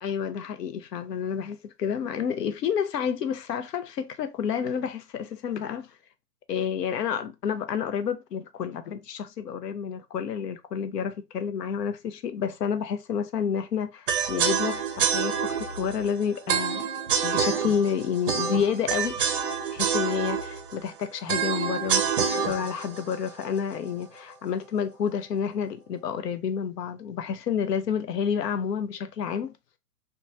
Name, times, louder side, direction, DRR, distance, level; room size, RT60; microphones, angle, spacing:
voice 1, 0.0-5.9 6.5-16.9 17.2-19.2 19.7-29.5, left 7 dB, 70° left, 0.6 m, -29 dB
sound 1, 14.1-24.1, right 7 dB, 35° right, 0.5 m, -28 dB
3.0 x 2.2 x 2.4 m
figure-of-eight pair, 115°, 49 cm